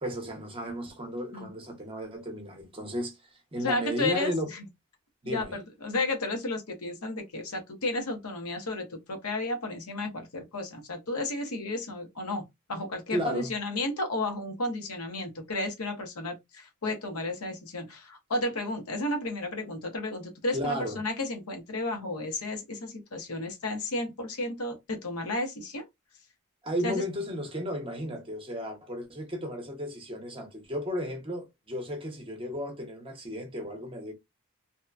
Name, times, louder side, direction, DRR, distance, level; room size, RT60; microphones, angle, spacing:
voice 1, 0.0-4.5 5.2-5.5 13.1-13.5 20.5-21.0 26.6-34.1, equal, 25° right, 0.7 m, -34 dB
voice 2, 3.6-4.7 5.2-25.9 26.8-27.0, left 2 dB, 75° left, 0.9 m, -33 dB
2.8 x 2.1 x 2.3 m
head